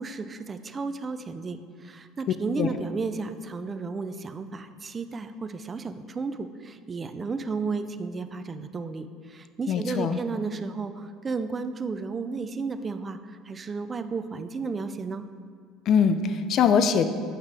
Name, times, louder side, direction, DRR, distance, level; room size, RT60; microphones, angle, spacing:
voice 1, 0.0-15.3, right 4 dB, 30° right, 11 dB, 0.4 m, -33 dB
voice 2, 9.7-10.2 15.9-17.1, left 7 dB, 55° left, 10 dB, 0.4 m, -22 dB
8.3 x 5.6 x 3.4 m, 2.1 s
supercardioid pair, 90°, 0 cm